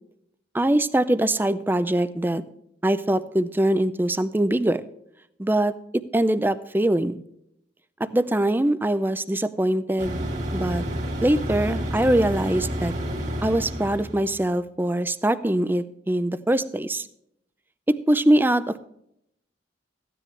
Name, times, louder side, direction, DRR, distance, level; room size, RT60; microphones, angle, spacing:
voice 1, 0.5-2.4 2.8-4.8 5.4-7.2 8.0-10.2 10.5-10.8 11.2-12.9 13.4-17.1 17.9-18.8, right 1 dB, 10° right, 13 dB, 0.4 m, -23 dB
sound 1, 10.0-14.4, equal, 40° right, 2.0 m, -30 dB
14.5 x 10.0 x 3.2 m, 0.76 s
head